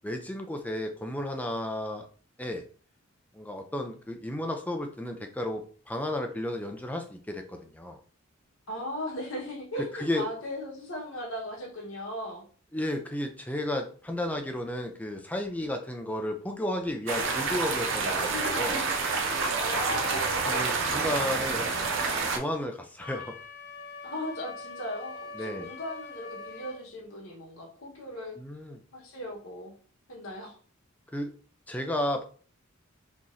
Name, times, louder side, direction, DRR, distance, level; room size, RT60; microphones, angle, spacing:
voice 1, 0.0-2.1 2.4-2.6 3.3-8.0 9.8-10.3 12.7-18.3 18.6-18.8 20.5-21.7 22.3-23.3 25.3-25.7 28.4-28.8 31.1-31.3 31.7-32.2, left 1 dB, 5° left, 4 dB, 0.4 m, -33 dB
voice 2, 8.7-12.4 18.2-18.7 19.6-21.0 24.0-28.4 28.9-29.7 30.1-30.6, left 1 dB, 75° left, 0 dB, 1.2 m, -37 dB
sound 1, 17.1-22.4, right 4 dB, 60° right, 0.6 m, -28 dB
Wind instrument woodwind instrument, 23.0-26.8, left 4 dB, 45° left, 0.9 m, -43 dB
3.8 x 3.0 x 2.6 m, 0.42 s
head